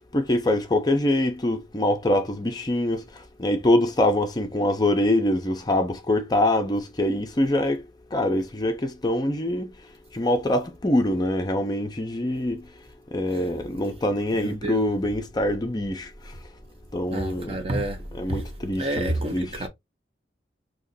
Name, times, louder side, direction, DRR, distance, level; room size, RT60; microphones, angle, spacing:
voice 1, 0.1-3.1 3.4-7.8 8.1-9.7 10.1-12.6 13.1-16.1 16.9-17.6 18.1-19.7, left 1 dB, 25° left, 0.5 m, -24 dB
voice 2, 14.3-14.9 17.1-18.4 18.7-19.7, right 1 dB, 35° right, 0.7 m, -29 dB
2.9 x 2.5 x 4.0 m
head